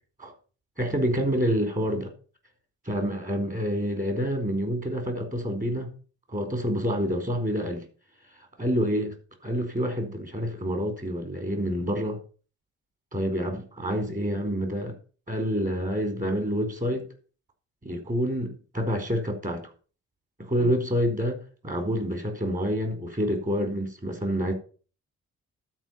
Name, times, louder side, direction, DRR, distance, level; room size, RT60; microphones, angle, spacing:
voice 1, 0.8-2.1 2.8-5.9 6.3-7.8 8.6-9.1 9.4-12.2 13.1-14.9 15.3-17.1 17.8-19.7 20.4-24.5, equal, 25° right, 4.5 m, -27 dB
12.5 x 5.1 x 7.3 m
cardioid pair, 90°, 30 cm